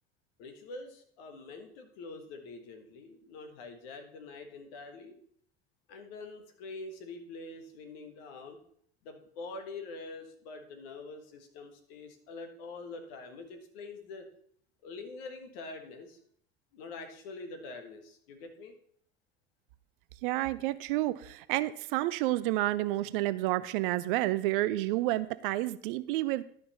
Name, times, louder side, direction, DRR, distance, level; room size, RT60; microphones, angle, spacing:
voice 1, 0.4-5.2 5.9-8.6 9.0-14.3 14.8-16.2 16.7-18.7, left 3 dB, 60° left, 5 dB, 1.5 m, -45 dB
voice 2, 20.2-26.5, right 17 dB, 55° right, 16 dB, 0.5 m, -30 dB
11.5 x 5.3 x 4.2 m, 0.63 s
figure-of-eight pair, 65°, 32 cm